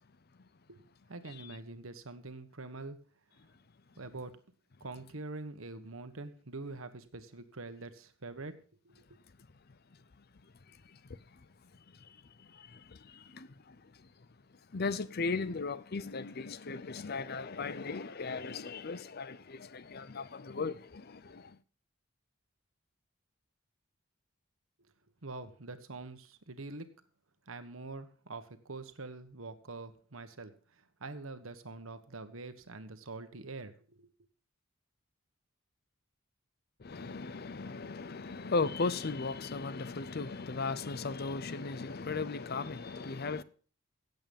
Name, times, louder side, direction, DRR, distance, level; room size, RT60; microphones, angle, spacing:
voice 1, 0.7-3.0 4.0-4.4 4.8-8.6 8.8-8.9 25.2-26.9 27.5-30.5 31.0-34.1, right 3 dB, 80° right, 1.4 m, -45 dB
voice 2, 10.7-11.5 11.7-14.1 14.7-21.6 36.8-43.4, left 4 dB, 50° left, 0.7 m, -37 dB
16.0 x 8.1 x 5.3 m
head